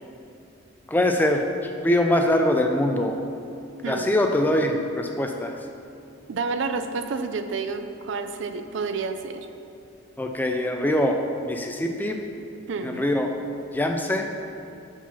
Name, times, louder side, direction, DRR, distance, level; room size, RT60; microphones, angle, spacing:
voice 1, 0.9-3.2 3.9-5.5 10.2-11.2 11.5-12.2 12.8-13.3 13.7-14.3, left 1 dB, 10° left, 3 dB, 0.3 m, -23 dB
voice 2, 3.8-4.1 6.3-9.5 12.7-13.0, right 4 dB, 65° right, 8 dB, 0.4 m, -29 dB
5.6 x 5.0 x 5.6 m, 2.6 s
head